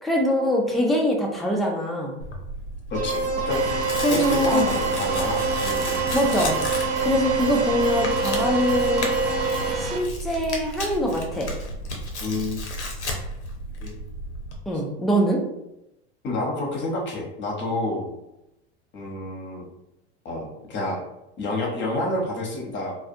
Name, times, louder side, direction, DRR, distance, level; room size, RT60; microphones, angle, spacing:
voice 1, 0.0-2.2 4.0-4.6 6.1-6.6 7.0-9.1 9.7-11.5 14.7-15.4, equal, ahead, -1 dB, 0.3 m, -23 dB
Tearing, 2.2-14.6, equal, 85° left, 0.6 m, -33 dB
voice 2, 2.9-3.8 4.1-6.0 12.2-12.6 13.8-13.9 16.2-18.1 18.9-19.7 20.2-21.0 21.4-23.0, left 2 dB, 35° left, -1 dB, 0.8 m, -29 dB
sound 1, 2.9-9.7, right 4 dB, 20° right, 0.9 m, -26 dB
sound 2, 3.5-10.0, right 3 dB, 80° right, 0.5 m, -31 dB
2.4 x 2.2 x 2.6 m, 0.88 s
hypercardioid pair, 85°, 33 cm